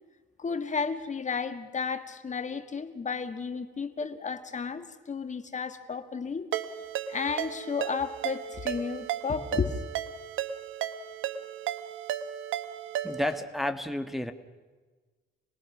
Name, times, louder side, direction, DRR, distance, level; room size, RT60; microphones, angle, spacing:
voice 1, 0.4-6.5 7.1-9.8, left 5 dB, 40° left, 8 dB, 1.8 m, -33 dB
Ringtone, 6.5-13.4, right 10 dB, 80° right, 1.2 m, -34 dB
voice 2, 13.0-14.3, left 1 dB, ahead, 6 dB, 1.5 m, -31 dB
27.0 x 21.0 x 6.2 m, 1.3 s
cardioid pair, 90°, 20 cm